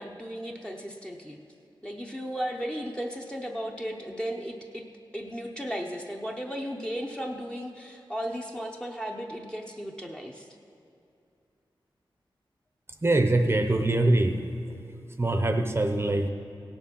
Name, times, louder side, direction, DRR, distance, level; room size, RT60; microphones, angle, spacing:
voice 1, 0.0-1.4 1.8-4.9 5.1-10.5, equal, 10° left, 1 dB, 0.7 m, -35 dB
voice 2, 13.0-14.4 15.2-16.3, right 2 dB, 25° right, 5 dB, 0.7 m, -23 dB
16.5 x 7.1 x 5.3 m, 2.6 s
wide cardioid pair, 85°, 9 cm